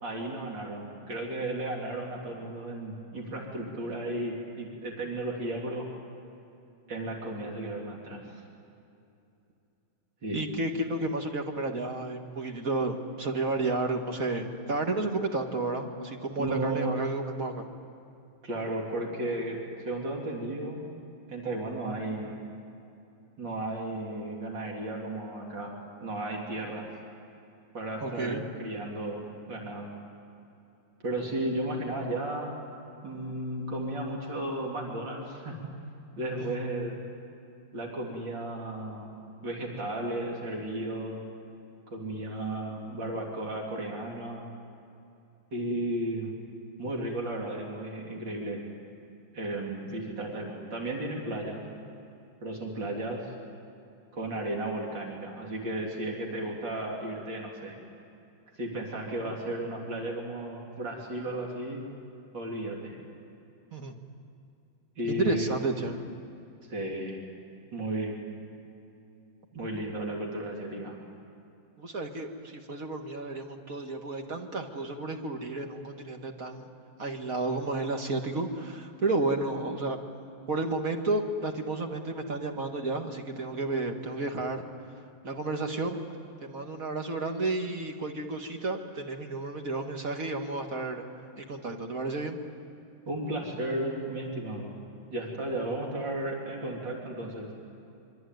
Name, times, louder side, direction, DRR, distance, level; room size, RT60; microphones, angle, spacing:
voice 1, 0.0-5.9 6.9-8.4 10.2-10.4 16.4-16.9 18.4-20.8 21.3-22.3 23.4-26.9 27.7-29.2 29.5-29.9 31.0-32.5 33.0-35.7 36.2-37.0 37.7-39.1 39.4-41.2 41.9-44.5 45.5-46.3 46.8-48.6 49.3-51.6 52.4-53.3 54.1-57.8 58.6-61.8 62.3-63.0 65.0-65.5 66.7-67.2 67.7-68.2 69.5-71.0 93.1-94.7 95.1-97.7, right 1 dB, 65° right, -1 dB, 4.4 m, -34 dB
voice 2, 10.3-17.7 28.0-28.4 36.4-36.6 63.7-63.9 65.1-66.0 71.8-76.6 77.0-80.0 80.5-84.6 85.2-86.0 86.4-91.0 91.4-92.4, right 2 dB, 45° right, 3 dB, 2.2 m, -32 dB
25.0 x 24.5 x 9.4 m, 2.7 s
omnidirectional pair, 2.2 m